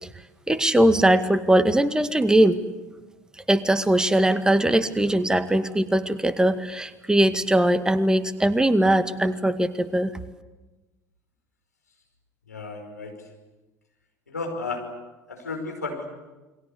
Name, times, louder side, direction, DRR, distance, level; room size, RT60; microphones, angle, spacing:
voice 1, 0.5-2.6 3.5-10.1, right 1 dB, 10° right, 10 dB, 2.0 m, -20 dB
voice 2, 12.5-13.3 14.3-14.9 15.3-16.1, left 3 dB, 85° left, 2 dB, 5.4 m, -33 dB
29.0 x 23.5 x 8.3 m, 1.1 s
figure-of-eight pair, 65°, 9 cm